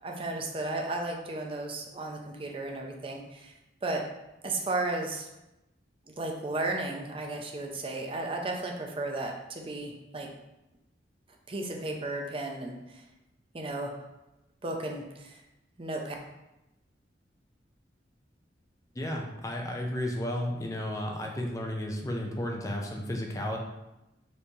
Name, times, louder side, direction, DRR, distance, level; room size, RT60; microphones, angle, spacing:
voice 1, 0.0-3.5 3.8-4.0 4.4-5.3 6.1-10.3 11.5-13.0 13.5-13.9 14.6-15.4 15.8-16.2, right 2 dB, 30° right, 1 dB, 0.5 m, -34 dB
voice 2, 18.9-23.6, left 1 dB, 20° left, 1 dB, 0.5 m, -33 dB
4.4 x 3.2 x 2.7 m, 0.94 s
head